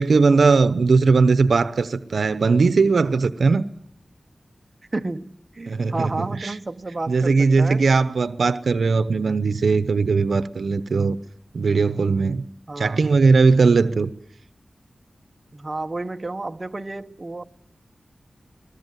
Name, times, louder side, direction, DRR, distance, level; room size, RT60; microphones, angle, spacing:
voice 1, 0.0-3.6 5.7-6.1 6.4-6.5 7.1-11.2 11.5-12.4 12.8-14.1, right 4 dB, 80° right, 0.9 m, -19 dB
voice 2, 4.9-7.8 12.7-13.0 15.5-17.4, right 2 dB, 35° right, 1.2 m, -31 dB
22.5 x 20.5 x 9.3 m
wide cardioid pair, 60°, 0 cm